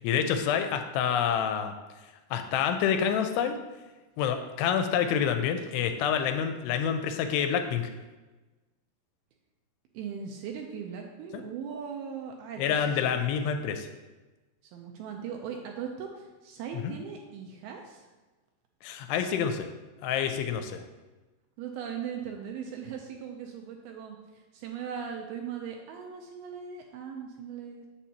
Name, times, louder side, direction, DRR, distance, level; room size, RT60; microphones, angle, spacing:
voice 1, 0.0-1.7 2.3-3.6 4.2-7.9 11.3-11.4 12.6-13.9 16.8-16.9 18.8-19.7 20.0-20.8, left 8 dB, 85° left, 7 dB, 2.6 m, -27 dB
voice 2, 9.9-13.1 14.6-18.1 21.6-27.9, right 7 dB, 80° right, 2 dB, 2.3 m, -39 dB
7.3 x 6.8 x 2.8 m, 1.2 s
omnidirectional pair, 4.8 m